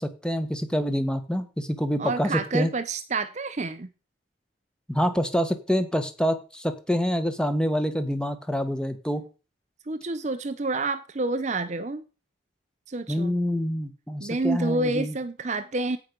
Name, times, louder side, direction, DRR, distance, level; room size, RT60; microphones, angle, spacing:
voice 1, 0.0-2.7 4.9-9.3 13.1-15.2, equal, 5° left, 1.2 m, -26 dB
voice 2, 2.0-3.9 9.9-12.0 12.9-13.3 14.2-16.0, right 3 dB, 35° right, 0.6 m, -28 dB
16.5 x 5.9 x 5.2 m
head